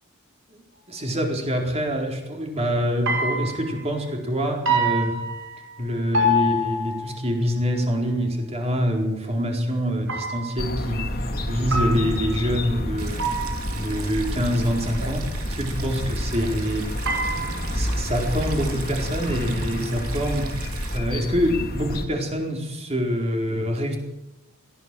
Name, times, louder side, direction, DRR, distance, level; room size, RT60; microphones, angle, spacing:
voice 1, 0.5-5.2 5.8-13.2 13.8-16.9 17.7-20.5 20.9-24.0, equal, 30° right, 2 dB, 4.3 m, -25 dB
sound 1, 3.1-3.9 4.7-5.8 6.1-7.2 10.1-10.7 11.7-12.4 13.2-13.9 17.1-17.9, equal, 60° right, 5.3 m, -26 dB
sound 2, 10.6-22.0, left 1 dB, 45° left, 2.8 m, -29 dB
Stream, 13.0-21.0, right 6 dB, 85° right, 3.3 m, -39 dB
22.0 x 16.5 x 7.7 m, 0.94 s
head